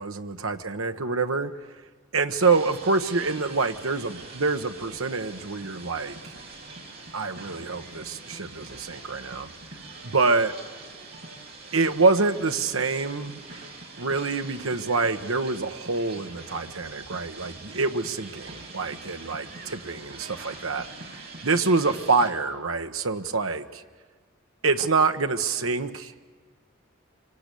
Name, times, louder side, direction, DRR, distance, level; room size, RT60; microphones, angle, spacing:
voice 1, 0.0-1.5 2.1-6.2 7.1-9.5 10.0-10.5 11.7-13.4 14.0-23.8 24.6-26.3, right 4 dB, 70° right, 7 dB, 1.2 m, -26 dB
sound 1, 2.4-22.3, right 3 dB, 45° right, 5.1 m, -43 dB
26.0 x 24.5 x 8.5 m, 1.5 s
head